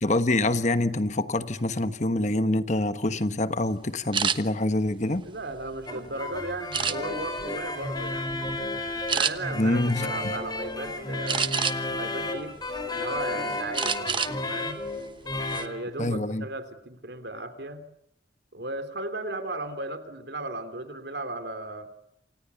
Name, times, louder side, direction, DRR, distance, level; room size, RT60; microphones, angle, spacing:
voice 1, 0.0-5.3 9.6-10.3 16.0-16.5, left 2 dB, 40° left, 1.3 m, -26 dB
sound 1, 4.1-4.4 5.0-6.0 6.7-7.3 7.8-8.1 8.4-8.6 9.1-9.3 11.3-12.0 12.5-13.2 13.7-14.4 14.7-14.9 15.3-15.7, right 6 dB, 25° right, 1.2 m, -28 dB
voice 2, 5.2-11.5 11.9-12.5 12.9-14.8 15.5-17.8 18.5-21.9, right 2 dB, 65° right, 3.2 m, -36 dB
sound 2, 5.9-15.8, left 2 dB, 20° left, 4.2 m, -32 dB
28.5 x 27.0 x 7.0 m
head